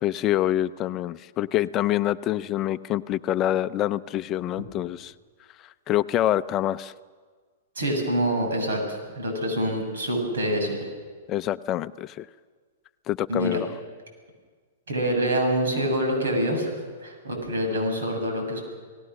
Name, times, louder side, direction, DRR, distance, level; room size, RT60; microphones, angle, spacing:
voice 1, 0.0-5.1 5.9-6.9 11.3-12.3 13.1-13.7, left 13 dB, 30° left, 14 dB, 0.6 m, -26 dB
voice 2, 7.8-10.9 13.3-13.6 14.9-16.7 17.0-18.6, equal, 80° right, 3 dB, 7.7 m, -26 dB
29.5 x 18.5 x 6.5 m, 1.5 s
hypercardioid pair, 115°, 0 cm